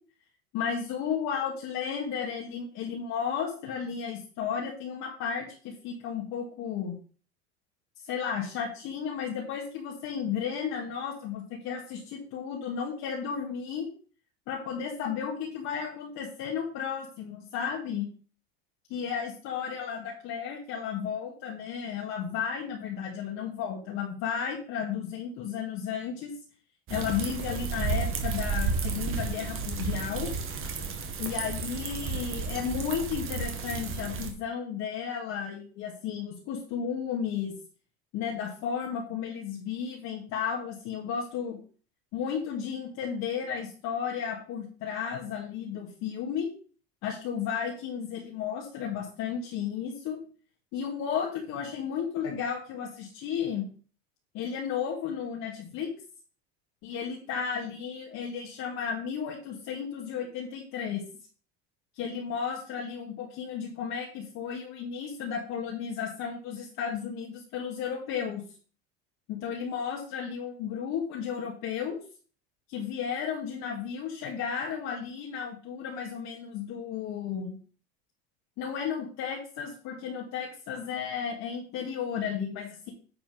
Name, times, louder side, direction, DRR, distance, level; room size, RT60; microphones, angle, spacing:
voice 1, 0.5-6.9 8.0-13.9 14.5-18.1 18.9-26.3 26.9-30.3 31.2-37.5 38.1-41.6 42.1-46.5 47.0-50.2 50.7-53.7 54.3-55.9 56.8-61.0 62.0-68.4 69.3-72.0 72.7-77.6 78.6-82.9, left 7 dB, 60° left, -2 dB, 2.4 m, -33 dB
sound 1, 26.9-34.3, right 4 dB, 40° right, 2.2 m, -32 dB
10.0 x 5.1 x 5.2 m, 0.41 s
supercardioid pair, 100°, 31 cm